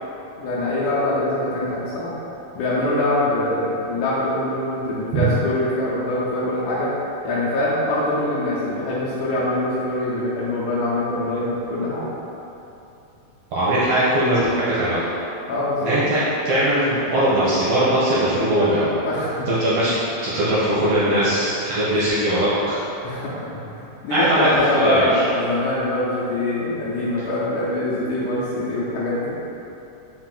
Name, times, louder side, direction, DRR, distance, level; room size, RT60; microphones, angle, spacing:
voice 1, 0.4-2.1 2.6-6.9 7.2-12.1 15.5-15.9 19.1-19.5 23.0-29.4, left 1 dB, 80° left, -8 dB, 1.9 m, -24 dB
voice 2, 13.5-15.1 15.8-18.9 19.5-19.9 20.2-22.8 24.1-25.2, right 1 dB, 75° right, -10 dB, 1.4 m, -20 dB
5.6 x 2.5 x 3.7 m, 2.9 s
omnidirectional pair, 3.8 m